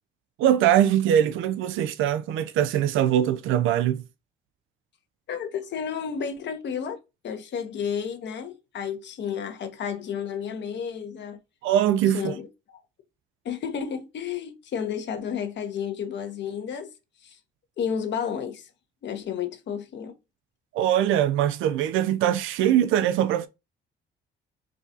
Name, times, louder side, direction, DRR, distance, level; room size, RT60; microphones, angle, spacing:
voice 1, 0.4-4.0 11.6-12.3 20.7-23.5, right 11 dB, 85° right, 0.4 m, -22 dB
voice 2, 5.3-7.0 7.2-11.4 12.1-12.8 13.4-16.9 17.2-17.4 17.8-18.7 19.0-20.1, left 7 dB, 65° left, 0.9 m, -32 dB
4.7 x 2.4 x 2.7 m
cardioid pair, 90°, 20 cm